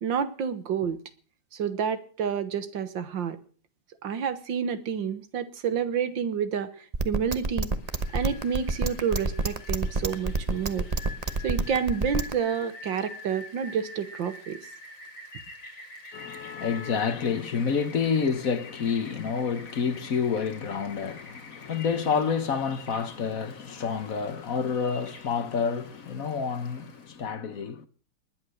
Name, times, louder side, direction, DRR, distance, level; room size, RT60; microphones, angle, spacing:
voice 1, 0.0-1.0 1.5-3.4 4.0-6.7 7.1-7.7 8.1-10.9 11.4-14.6, right 7 dB, 75° right, 2.0 m, -29 dB
sound 1, 6.9-12.3, right 2 dB, 25° right, 0.9 m, -27 dB
Rain, 7.7-27.2, left 3 dB, 75° left, 3.3 m, -47 dB
voice 2, 16.1-27.9, left 6 dB, 50° left, 1.3 m, -28 dB
20.5 x 10.5 x 6.5 m
omnidirectional pair, 2.1 m